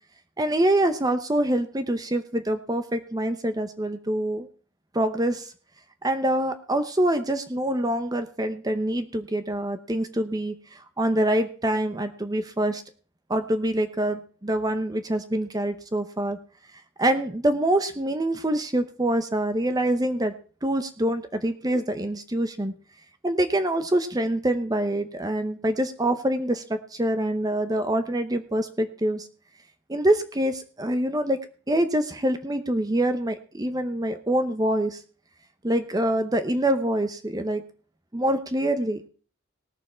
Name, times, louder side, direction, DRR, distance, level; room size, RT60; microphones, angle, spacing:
voice 1, 0.4-4.5 4.9-5.5 6.0-12.8 13.3-16.4 17.0-20.3 20.6-22.8 23.2-29.3 29.9-31.4 31.7-35.0 35.6-37.6 38.1-39.0, right 1 dB, 20° right, 9 dB, 0.8 m, -25 dB
18.5 x 7.0 x 4.3 m, 0.39 s
head